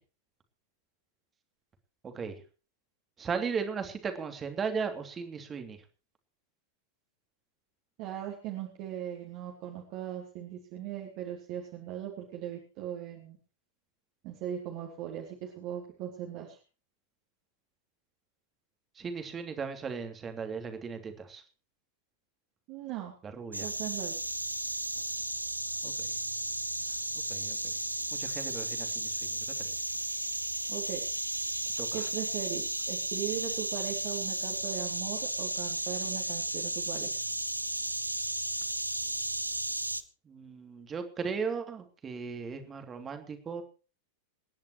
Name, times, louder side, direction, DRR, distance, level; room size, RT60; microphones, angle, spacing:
voice 1, 2.0-2.3 3.2-5.8 19.0-21.4 23.2-23.7 25.8-26.1 27.3-27.6 28.1-29.7 31.8-32.1 40.2-43.6, right 5 dB, 20° right, 6 dB, 2.8 m, -37 dB
voice 2, 8.0-13.4 14.2-16.6 22.7-23.1 23.6-24.2 30.7-31.0 31.9-37.1, right 11 dB, 40° right, 0 dB, 3.1 m, -39 dB
sound 1, 23.5-40.0, right 1 dB, 85° right, 0.8 m, -34 dB
27.5 x 10.5 x 3.1 m, 0.35 s
figure-of-eight pair, 90°, 0 cm